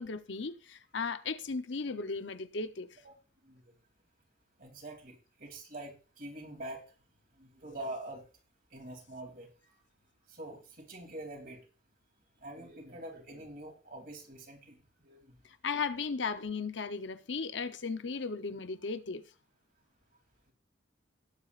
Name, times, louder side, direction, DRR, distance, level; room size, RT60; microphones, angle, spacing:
voice 1, 0.0-2.9 15.6-19.2, left 4 dB, 70° left, 0.8 m, -36 dB
voice 2, 4.6-6.8 7.4-8.3 8.7-9.8 10.3-11.6 12.4-15.4, right 1 dB, 45° right, 3.0 m, -45 dB
19.0 x 8.2 x 2.5 m
head